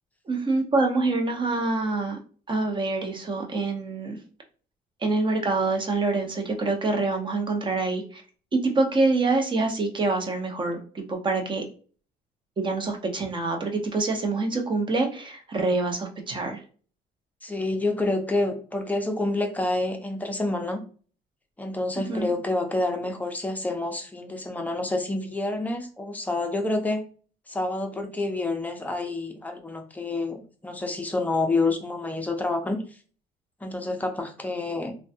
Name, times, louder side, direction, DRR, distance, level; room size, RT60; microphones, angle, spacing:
voice 1, 0.3-2.2 2.5-4.2 5.0-8.2 8.5-11.6 12.6-16.6 22.1-22.3, right 3 dB, 30° right, 4 dB, 0.8 m, -26 dB
voice 2, 17.4-20.8 21.6-27.0 27.5-32.8 33.6-34.9, left 2 dB, 10° left, 3 dB, 0.6 m, -28 dB
3.1 x 2.3 x 2.7 m, 0.40 s
cardioid pair, 110°, 17 cm